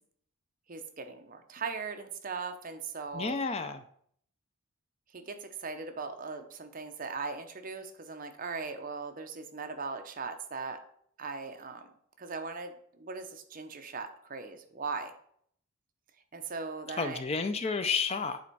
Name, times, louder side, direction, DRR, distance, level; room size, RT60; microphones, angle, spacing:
voice 1, 0.7-3.4 5.1-10.8 11.2-11.9 12.2-15.1 16.3-17.2, right 4 dB, 40° right, 7 dB, 0.7 m, -39 dB
voice 2, 3.1-3.8 17.0-18.4, left 4 dB, 30° left, 9 dB, 0.4 m, -31 dB
8.4 x 4.4 x 4.6 m, 0.64 s
head